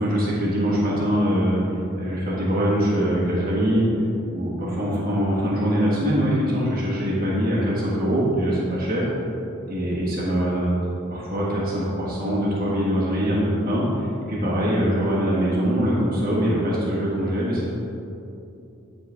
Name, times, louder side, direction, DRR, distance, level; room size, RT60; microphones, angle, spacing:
voice 1, 0.0-3.8 4.3-9.1 9.7-10.7 11.1-17.7, equal, 45° right, -6 dB, 1.4 m, -23 dB
10.0 x 4.4 x 3.4 m, 2.8 s
head